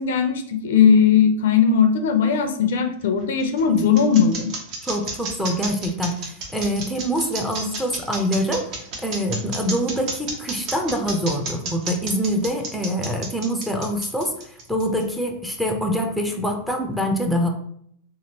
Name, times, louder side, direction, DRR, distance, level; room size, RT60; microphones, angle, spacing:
voice 1, 0.0-4.5, left 7 dB, 75° left, 6 dB, 0.4 m, -18 dB
sound 1, 3.0-15.0, right 3 dB, 45° right, 0.9 m, -31 dB
voice 2, 4.8-8.7 9.0-17.5, equal, ahead, 3 dB, 0.5 m, -25 dB
3.0 x 2.5 x 2.8 m, 0.66 s
hypercardioid pair, 120°, 0 cm